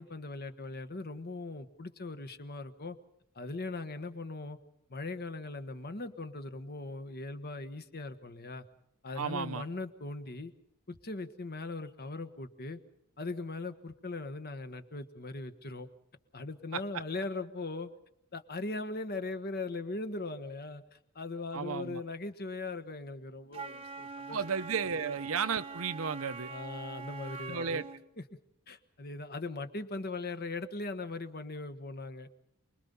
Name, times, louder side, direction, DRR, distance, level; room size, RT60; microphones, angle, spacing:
voice 1, 0.0-3.0 3.3-4.6 4.9-8.7 9.0-10.5 10.9-12.8 13.2-15.9 16.3-17.9 18.3-24.4 26.5-27.8 28.2-28.3 28.7-32.3, left 3 dB, 45° left, 10 dB, 1.3 m, -39 dB
voice 2, 9.2-9.6 16.7-16.8 21.5-22.0 24.3-26.5 27.5-27.9, right 6 dB, 70° right, 11 dB, 0.8 m, -33 dB
Wind instrument woodwind instrument, 23.5-28.0, right 5 dB, 25° right, 1.0 m, -44 dB
28.5 x 21.0 x 5.5 m, 0.77 s
head